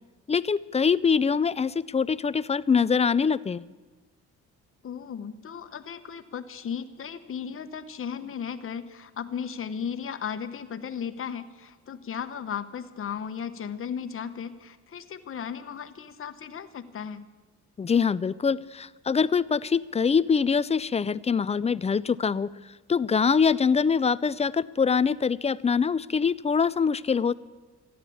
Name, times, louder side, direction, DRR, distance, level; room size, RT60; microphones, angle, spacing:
voice 1, 0.3-3.7 17.8-22.5 22.9-27.3, left 6 dB, 20° left, 19 dB, 0.4 m, -24 dB
voice 2, 4.8-17.2, left 7 dB, 45° left, 9 dB, 1.1 m, -36 dB
14.0 x 11.0 x 8.5 m, 1.2 s
cardioid pair, 90°, 30 cm